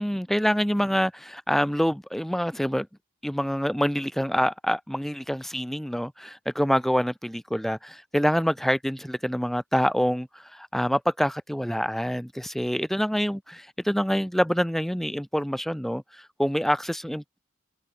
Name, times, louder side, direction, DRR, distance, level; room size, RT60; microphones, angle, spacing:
voice 1, 0.0-2.9 3.2-16.0 16.4-17.4, equal, ahead, 1.2 m, -26 dB
head